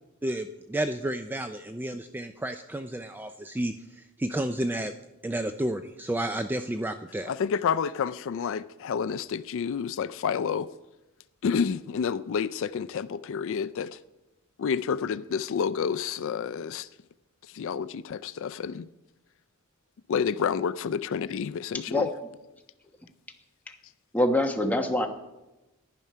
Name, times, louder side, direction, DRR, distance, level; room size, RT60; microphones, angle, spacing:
voice 1, 0.2-3.7 4.2-4.9 5.2-7.3, right 1 dB, 10° right, 0.3 m, -31 dB
voice 2, 7.3-10.7 11.4-14.0 14.6-16.9 17.5-18.9 20.1-22.1, left 6 dB, 65° left, 0.4 m, -29 dB
voice 3, 24.1-25.1, left 1 dB, 5° left, 1.1 m, -24 dB
10.5 x 10.5 x 5.6 m
head